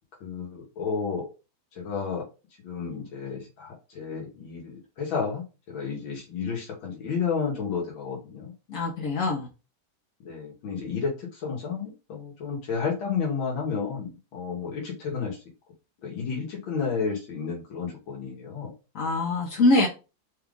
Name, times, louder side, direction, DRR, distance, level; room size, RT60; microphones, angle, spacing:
voice 1, 0.2-1.3 1.7-2.2 2.6-8.5 10.2-15.4 16.0-18.7, left 5 dB, 85° left, -2 dB, 2.0 m, -31 dB
voice 2, 8.7-9.5 18.9-19.9, left 2 dB, 60° left, -2 dB, 0.9 m, -23 dB
4.3 x 2.4 x 3.5 m, 0.31 s
omnidirectional pair, 2.1 m